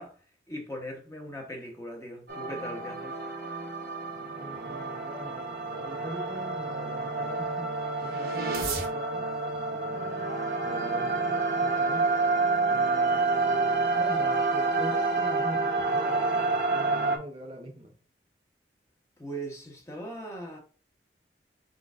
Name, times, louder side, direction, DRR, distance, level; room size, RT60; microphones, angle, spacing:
voice 1, 0.0-3.2 19.2-20.6, right 1 dB, 15° left, 1.0 m, -39 dB
sound 1, 2.3-17.2, right 3 dB, 60° right, 1.0 m, -28 dB
voice 2, 4.4-7.7 8.0-10.3 10.6-12.1 12.6-17.9, equal, 35° right, 0.6 m, -42 dB
4.5 x 3.9 x 2.5 m
head